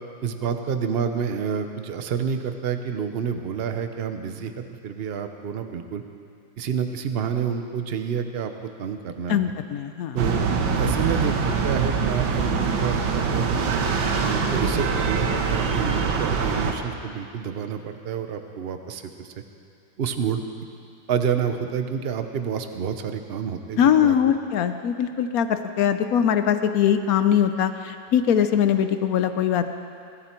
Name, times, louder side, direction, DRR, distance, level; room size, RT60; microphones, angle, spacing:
voice 1, 0.2-6.0 6.6-9.4 10.1-13.6 14.2-19.3 20.0-20.4 21.1-24.1, right 7 dB, 60° right, 7 dB, 0.6 m, -29 dB
voice 2, 9.3-10.4 23.8-29.7, left 9 dB, 70° left, 9 dB, 0.9 m, -22 dB
sound 1, 10.2-16.7, right 5 dB, 85° right, 1.9 m, -24 dB
21.5 x 13.0 x 4.5 m, 2.4 s
omnidirectional pair, 2.1 m